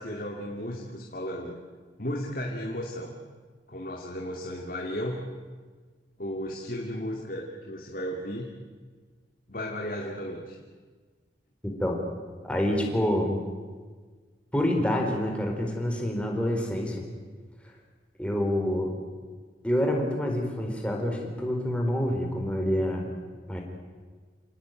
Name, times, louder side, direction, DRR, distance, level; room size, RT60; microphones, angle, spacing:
voice 1, 0.0-1.6 2.0-3.1 3.7-5.3 6.2-8.5 9.5-10.6, equal, 50° left, 0 dB, 2.6 m, -34 dB
voice 2, 11.6-12.0 12.4-13.4 14.5-17.0 18.2-19.0 19.6-23.1 23.5-23.6, left 1 dB, 5° left, 1 dB, 4.3 m, -27 dB
28.5 x 18.0 x 9.2 m, 1.5 s
head